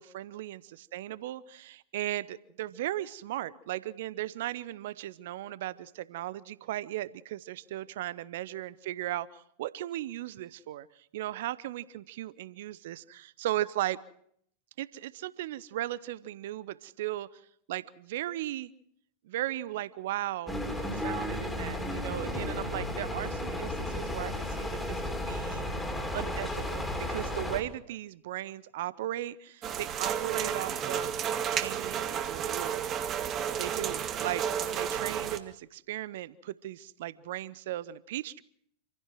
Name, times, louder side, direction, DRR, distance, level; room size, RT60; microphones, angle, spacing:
voice 1, 0.0-14.0 14.8-17.4 17.7-18.7 19.2-25.6 26.1-32.8 33.6-38.4, right 14 dB, 55° right, 20 dB, 0.7 m, -37 dB
sound 1, 20.5-27.6, left 1 dB, 5° left, 2.9 m, -34 dB
sound 2, 29.6-35.4, right 8 dB, 30° right, 1.6 m, -32 dB
27.0 x 15.5 x 6.1 m, 0.68 s
figure-of-eight pair, 90°, 0 cm